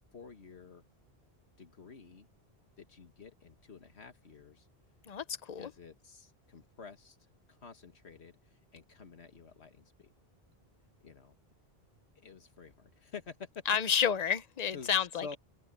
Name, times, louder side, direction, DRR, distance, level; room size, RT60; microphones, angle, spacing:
voice 1, 0.1-0.8 1.6-2.3 2.8-4.7 5.6-7.2 7.5-10.1 11.0-11.3 12.2-13.5 14.7-15.4, left 5 dB, 85° left, 1.9 m, -50 dB
voice 2, 5.1-5.7 13.7-15.4, left 7 dB, 45° left, 0.8 m, -30 dB
open air
omnidirectional pair, 1.1 m